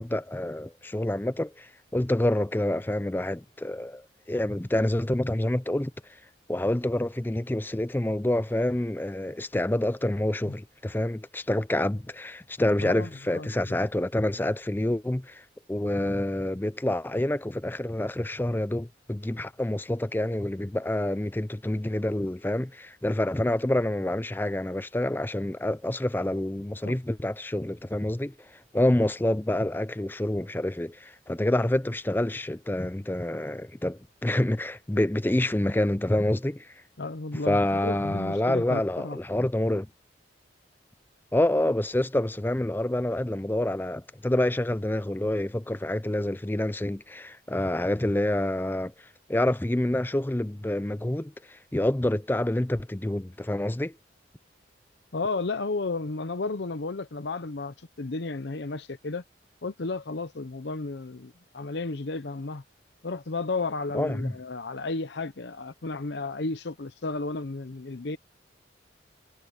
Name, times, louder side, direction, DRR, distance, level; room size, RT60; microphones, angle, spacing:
voice 1, 0.0-4.0 4.3-5.9 6.5-28.3 28.7-36.7 37.4-39.9 41.3-48.9 49.3-54.0 63.9-64.3, left 1 dB, 10° left, 0.4 m, -27 dB
voice 2, 12.8-13.8 26.8-27.0 37.0-39.2 55.1-59.2 59.6-62.6 63.0-68.2, left 3 dB, 65° left, 0.7 m, -33 dB
head